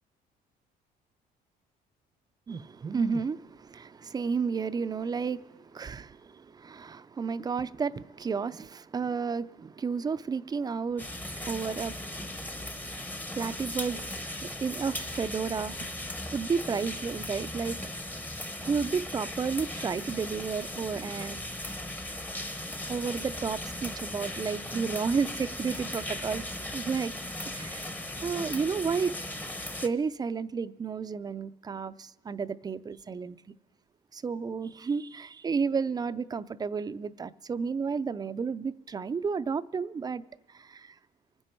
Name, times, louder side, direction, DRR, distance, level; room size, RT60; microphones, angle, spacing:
voice 1, 2.5-15.8 16.3-17.8 18.6-21.4 22.9-26.4 26.7-27.1 27.5-27.9 28.2-29.1 29.8-33.4 34.1-40.2 40.5-41.0, right 5 dB, 25° right, 0.4 m, -32 dB
sound 1, 11.0-29.9, left 1 dB, 10° left, 0.8 m, -37 dB
25.0 x 9.8 x 4.5 m
cardioid pair, 110°, 17 cm